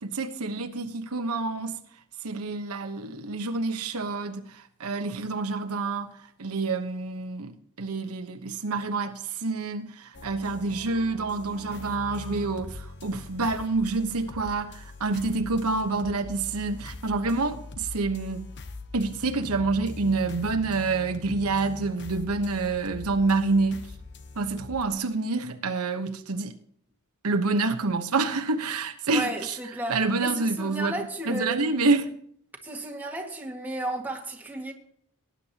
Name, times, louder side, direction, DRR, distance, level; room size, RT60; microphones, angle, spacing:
voice 1, 0.0-1.8 2.2-6.1 6.4-18.5 18.9-23.9 24.4-26.5 27.2-29.6 29.9-30.9 31.3-32.1, right 3 dB, 85° right, 1.1 m, -27 dB
sound 1, 10.1-24.9, left 3 dB, 55° left, 1.0 m, -42 dB
voice 2, 29.1-31.9 32.6-34.7, right 1 dB, 10° right, 1.8 m, -33 dB
18.5 x 9.8 x 2.9 m
head